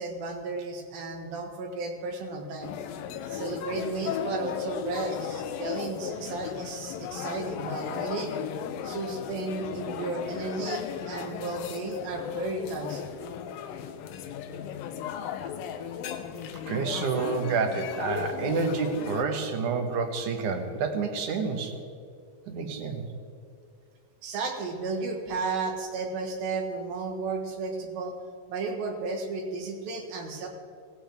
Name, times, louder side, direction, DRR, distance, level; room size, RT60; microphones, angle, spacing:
voice 1, 0.0-2.7 3.3-8.3 8.8-13.0 24.2-28.1 28.5-30.5, right 3 dB, 85° right, 3 dB, 3.3 m, -33 dB
sound 1, 2.6-19.2, left 8 dB, 85° left, 2.5 m, -36 dB
voice 2, 16.7-21.8 22.5-23.0, right 5 dB, 65° right, 5 dB, 2.4 m, -29 dB
16.5 x 16.0 x 3.5 m, 2.4 s
omnidirectional pair, 4.1 m